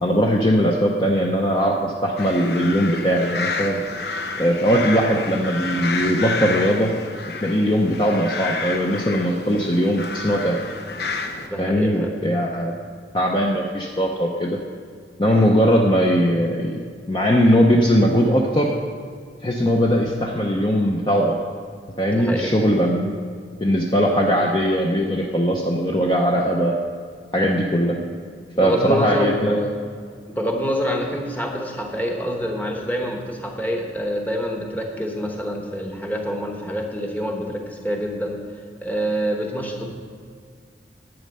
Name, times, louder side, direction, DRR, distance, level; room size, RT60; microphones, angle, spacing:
voice 1, 0.0-3.8 4.4-6.9 7.4-10.6 11.6-12.7 13.1-14.6 15.2-16.8 17.1-18.7 19.4-21.4 22.0-23.1 23.6-26.7 27.3-28.0 28.6-29.6, equal, 25° left, -1 dB, 0.6 m, -20 dB
sound 1, 2.2-11.5, left 4 dB, 60° left, 0.7 m, -30 dB
voice 2, 11.4-12.1 22.1-22.5 28.6-29.8 30.3-38.4 38.8-39.9, equal, 10° left, 1 dB, 1.1 m, -26 dB
11.0 x 8.4 x 5.4 m, 2.1 s
head